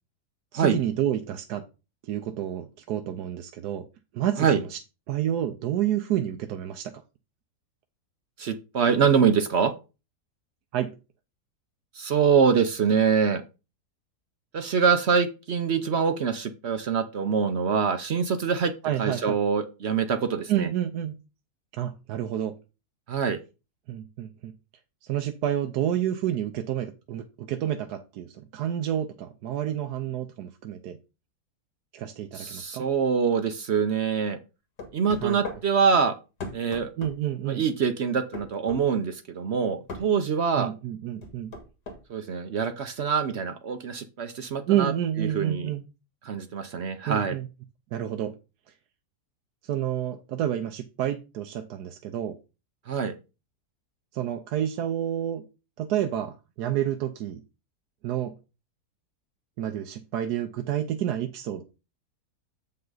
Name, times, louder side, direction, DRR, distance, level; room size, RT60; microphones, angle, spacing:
voice 1, 0.5-1.6 2.0-3.8 4.1-4.8 5.1-6.9 10.7-10.9 18.8-19.4 20.5-21.1 21.7-22.5 23.9-24.5 25.0-31.0 31.9-32.8 35.2-35.4 37.0-37.6 40.6-41.5 44.7-45.8 47.1-47.5 47.9-48.3 49.6-52.4 54.1-55.4 55.8-57.4 58.0-58.3 59.6-61.6, right 11 dB, 75° right, 6 dB, 1.2 m, -29 dB
voice 2, 8.4-9.7 11.9-13.4 14.5-18.7 19.0-20.7 23.1-23.4 32.3-34.4 34.9-36.1 36.5-36.9 37.5-40.7 42.1-44.9 45.2-45.7 46.2-47.4 52.9-53.1, right 6 dB, 60° right, 9 dB, 0.7 m, -24 dB
sound 1, 34.8-35.6 36.4-37.2 38.3-38.8 39.9-40.1 41.2-42.0, left 3 dB, 85° left, 2.2 m, -37 dB
7.7 x 5.6 x 3.9 m, 0.30 s
omnidirectional pair, 1.7 m